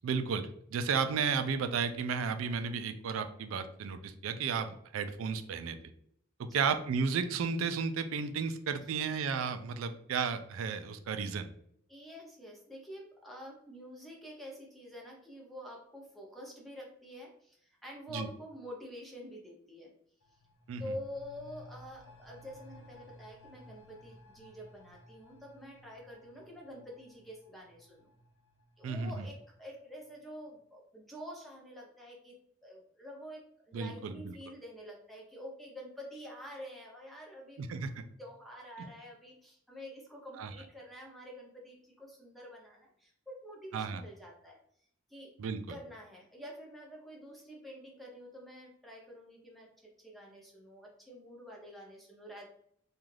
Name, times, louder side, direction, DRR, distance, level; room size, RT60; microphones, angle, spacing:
voice 1, 0.0-5.8 6.4-11.5 18.1-18.3 20.7-20.8 28.8-29.1 33.7-34.3 37.6-38.0 38.8-38.9 40.4-40.5 43.7-44.0 45.4-45.6, right 5 dB, 70° right, 9 dB, 0.3 m, -33 dB
voice 2, 11.9-19.9 20.8-28.1 28.8-32.3 32.6-37.8 38.2-44.6 45.1-45.3 45.7-49.7 50.0-52.5, equal, ahead, -2 dB, 0.6 m, -48 dB
sound 1, 20.2-29.6 29.9-30.0, left 1 dB, 65° left, 0.5 m, -57 dB
2.5 x 2.3 x 3.2 m, 0.66 s
head